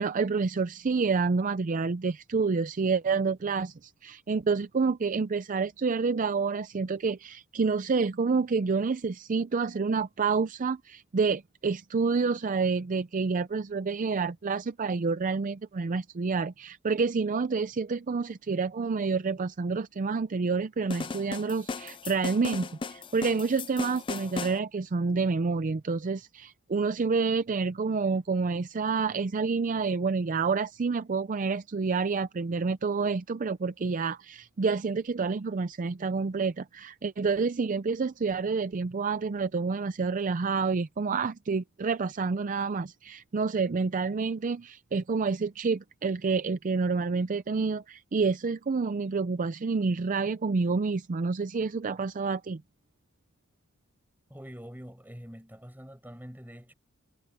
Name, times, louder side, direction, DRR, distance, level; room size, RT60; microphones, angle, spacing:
voice 1, 0.0-52.6, right 4 dB, 40° right, 0.4 m, -28 dB
sound 1, 20.9-24.6, left 4 dB, 25° left, 0.4 m, -36 dB
voice 2, 54.3-56.7, equal, 10° right, 7.2 m, -45 dB
head